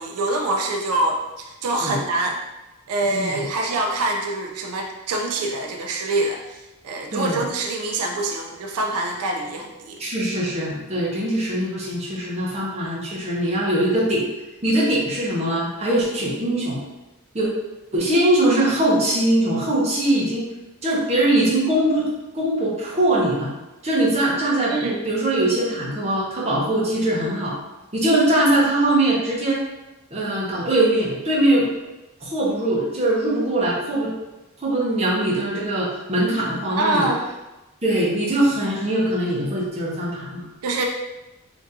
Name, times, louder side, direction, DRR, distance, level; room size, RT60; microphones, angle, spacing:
voice 1, 0.0-2.4 2.9-10.0 24.7-25.0 36.8-37.2 40.6-40.8, right 2 dB, 85° right, 2 dB, 0.4 m, -25 dB
voice 2, 3.1-3.4 7.1-7.4 10.0-14.3 14.6-16.8 17.3-17.5 17.9-20.5 20.8-22.0 22.3-23.5 23.8-27.6 27.9-29.6 30.1-31.7 32.2-34.1 34.6-37.1 37.8-40.5, right 1 dB, 30° right, -5 dB, 0.7 m, -21 dB
3.4 x 2.5 x 2.7 m, 1.0 s
head